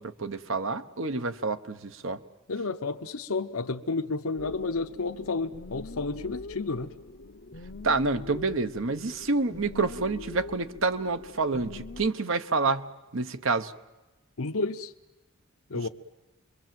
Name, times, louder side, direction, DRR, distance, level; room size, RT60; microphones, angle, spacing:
voice 1, 0.0-2.2 7.8-13.7 15.7-15.9, right 3 dB, 60° right, 11 dB, 1.1 m, -28 dB
voice 2, 2.5-6.9 14.4-14.9 15.7-15.9, left 3 dB, 75° left, 5 dB, 0.9 m, -31 dB
sound 1, 4.4-12.1, left 2 dB, 50° left, 0.8 m, -43 dB
27.0 x 23.0 x 7.7 m, 1.1 s
head